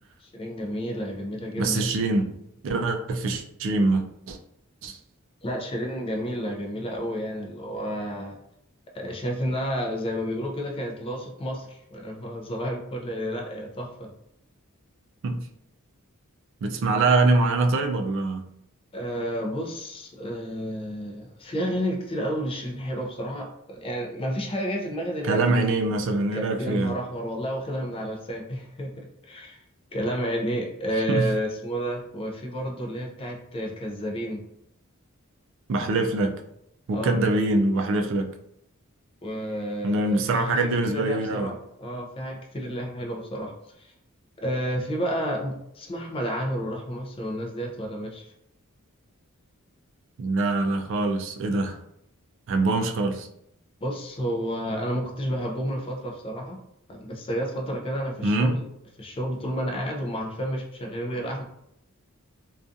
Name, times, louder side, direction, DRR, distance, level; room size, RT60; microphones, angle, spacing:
voice 1, 0.2-1.9 5.4-8.4 8.9-14.1 18.9-25.4 26.3-29.6 29.9-34.4 36.9-37.2 39.2-43.5 43.8-43.9 44.4-48.3 53.8-56.6 56.9-58.7 59.0-61.4, equal, 25° left, 1 dB, 0.4 m, -31 dB
voice 2, 1.6-2.3 2.6-4.4 4.8-5.0 15.2-15.5 16.6-18.4 25.2-27.0 31.1-31.3 35.7-36.3 36.9-38.3 39.8-41.5 50.2-51.8 52.5-53.3 58.2-58.6, right 2 dB, 60° right, 5 dB, 0.3 m, -24 dB
2.4 x 2.3 x 2.5 m, 0.77 s
head